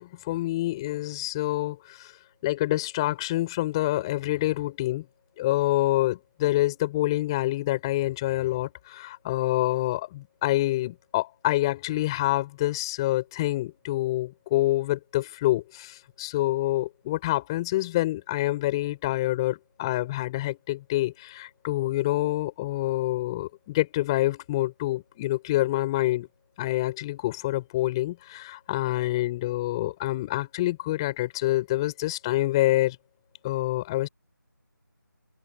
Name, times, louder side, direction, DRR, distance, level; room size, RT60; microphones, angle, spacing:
voice 1, 0.0-2.1 2.4-5.1 5.4-26.3 26.6-33.0 33.4-34.1, left 16 dB, 15° left, 7.0 m, -27 dB
open air
figure-of-eight pair, 165°, 11 cm